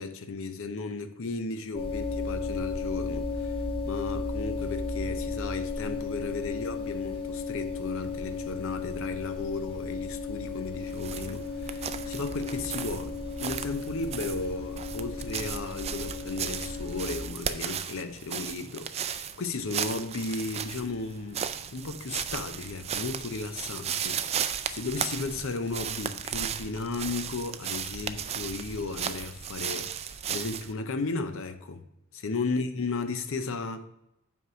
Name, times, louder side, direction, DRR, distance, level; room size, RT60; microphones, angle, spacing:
voice 1, 0.0-31.8 32.2-33.9, left 3 dB, 65° left, 0.6 m, -35 dB
sound 1, 1.7-17.2, left 4 dB, 25° left, 1.2 m, -34 dB
sound 2, 10.8-30.7, right 8 dB, 30° right, 0.3 m, -35 dB
5.6 x 4.7 x 6.0 m
head